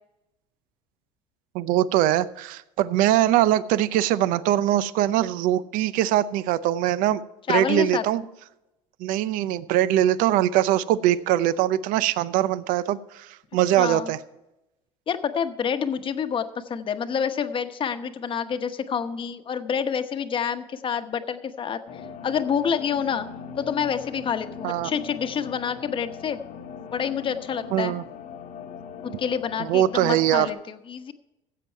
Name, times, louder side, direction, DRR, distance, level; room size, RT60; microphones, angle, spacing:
voice 1, 1.5-7.2 7.5-8.2 9.0-14.2 24.6-24.9 27.7-28.0 29.6-30.5, right 13 dB, 70° right, 17 dB, 0.6 m, -22 dB
voice 2, 7.5-8.0 13.8-14.1 15.1-23.3 23.6-26.4 26.9-27.9 29.0-31.1, left 7 dB, 35° left, 9 dB, 1.0 m, -28 dB
sound 1, 21.9-30.5, left 5 dB, 60° left, 1.2 m, -40 dB
16.0 x 7.6 x 4.6 m, 0.94 s
supercardioid pair, 105°, 15 cm